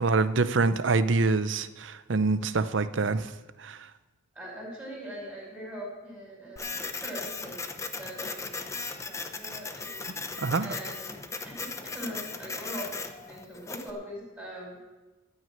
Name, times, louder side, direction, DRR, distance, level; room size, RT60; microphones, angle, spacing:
voice 1, 0.0-3.3 3.6-3.8 10.4-10.7, right 3 dB, 65° right, 13 dB, 0.6 m, -25 dB
voice 2, 4.3-11.2 11.4-14.8, equal, 10° right, -5 dB, 4.9 m, -42 dB
Printer, 6.6-13.9, left 4 dB, 15° left, 0.7 m, -37 dB
14.5 x 6.4 x 8.9 m, 1.1 s
head